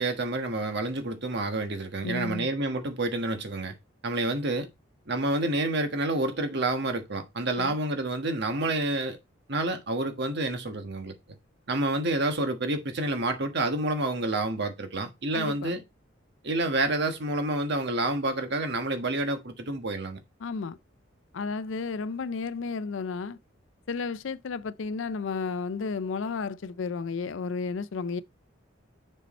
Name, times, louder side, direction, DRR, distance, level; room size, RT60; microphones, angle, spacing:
voice 1, 0.0-3.7 4.0-4.7 5.1-9.2 9.5-11.1 11.7-15.8 16.4-20.2, right 2 dB, 60° right, 1.3 m, -28 dB
voice 2, 2.0-2.5 7.6-7.7 15.3-15.7 20.4-20.8 21.3-23.4 23.9-28.2, left 4 dB, 70° left, 0.5 m, -32 dB
6.8 x 4.6 x 4.2 m
head